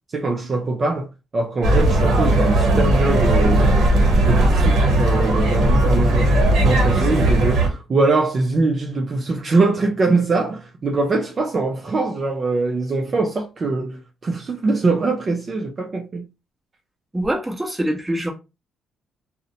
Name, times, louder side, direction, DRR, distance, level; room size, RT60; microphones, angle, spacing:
voice 1, 0.1-3.7 4.2-6.4 6.6-16.3, right 3 dB, 40° right, 0.4 m, -22 dB
sound 1, 1.6-7.7, right 1 dB, 75° right, 0.8 m, -17 dB
voice 2, 17.1-18.3, right 1 dB, 10° right, 0.9 m, -24 dB
2.6 x 2.0 x 2.7 m
cardioid pair, 90°, 0 cm